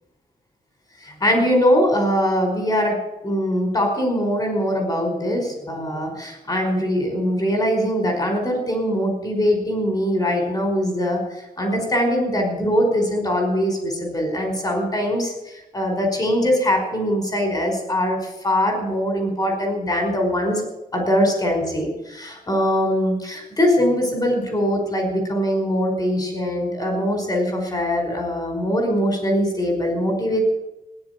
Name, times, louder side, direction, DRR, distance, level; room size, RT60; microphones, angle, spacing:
voice 1, 1.0-3.0 3.2-11.2 11.6-20.6 20.9-30.4, equal, 25° left, 3 dB, 5.1 m, -22 dB
16.0 x 10.5 x 8.4 m, 0.93 s
wide cardioid pair, 165°, 15 cm